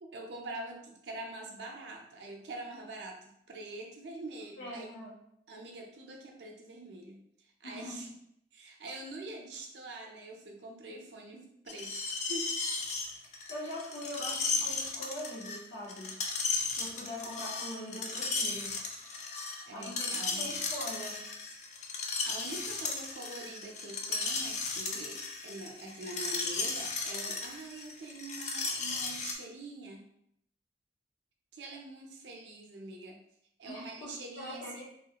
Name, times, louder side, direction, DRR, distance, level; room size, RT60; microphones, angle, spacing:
voice 1, 0.0-5.0 5.5-8.1 8.5-12.5 19.7-20.6 22.2-30.1 31.5-33.2 33.6-34.8, right 2 dB, 75° right, 1 dB, 0.5 m, -45 dB
voice 2, 4.6-5.1 7.6-8.0 13.3-16.2 16.7-18.7 19.7-21.2 33.6-34.8, left 1 dB, 90° left, -5 dB, 1.3 m, -42 dB
Screech, 11.7-29.3, left 4 dB, 40° left, 0.4 m, -35 dB
3.0 x 2.3 x 2.8 m, 0.73 s
head